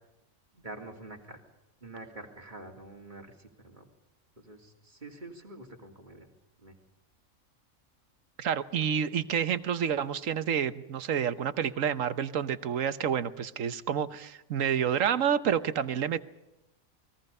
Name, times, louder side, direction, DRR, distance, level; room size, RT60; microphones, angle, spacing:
voice 1, 0.5-1.4 1.8-3.9 4.4-6.3 6.6-6.7, right 2 dB, 35° right, 2 dB, 3.3 m, -46 dB
voice 2, 8.4-16.2, right 8 dB, 70° right, 13 dB, 1.4 m, -29 dB
29.5 x 21.0 x 5.5 m, 0.94 s
omnidirectional pair, 1.4 m